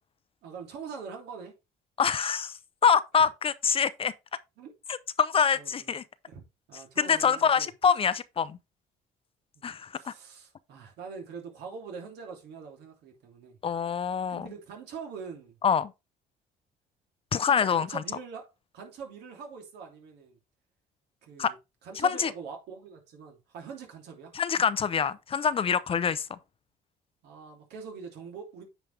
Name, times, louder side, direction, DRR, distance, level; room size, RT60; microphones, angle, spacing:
voice 1, 0.4-1.5 3.1-3.3 4.6-4.7 5.5-6.0 6.3-6.4 6.7-7.7 9.5-9.7 9.9-13.6 14.3-15.6 17.4-18.5 18.7-20.4 21.2-21.5 21.8-24.3 27.2-28.6, right 5 dB, 80° right, 3.0 m, -43 dB
voice 2, 2.0-4.1 5.2-6.0 7.0-8.6 9.6-10.1 13.6-14.5 15.6-15.9 17.3-18.0 21.4-21.5 22.0-22.3 24.3-26.4, left 7 dB, 35° left, 0.5 m, -25 dB
9.1 x 5.1 x 3.3 m
cardioid pair, 110°, 17 cm